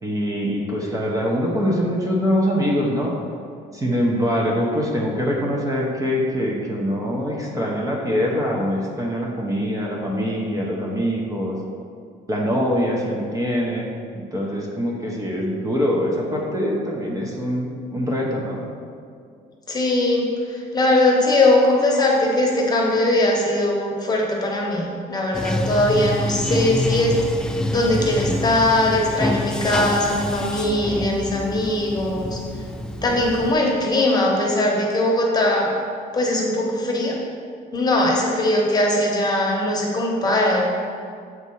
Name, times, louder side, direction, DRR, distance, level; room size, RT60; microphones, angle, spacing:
voice 1, 0.0-3.1 3.7-11.6 12.3-18.6, equal, 20° right, -2 dB, 1.0 m, -23 dB
voice 2, 19.7-27.2 27.7-32.4 33.0-35.7 36.1-37.2 37.7-40.6, left 1 dB, 25° left, -2 dB, 1.2 m, -20 dB
Bathtub (filling or washing), 25.3-33.5, left 1 dB, 5° left, 0.3 m, -27 dB
8.0 x 3.2 x 5.5 m, 2.3 s
cardioid pair, 110°, 17 cm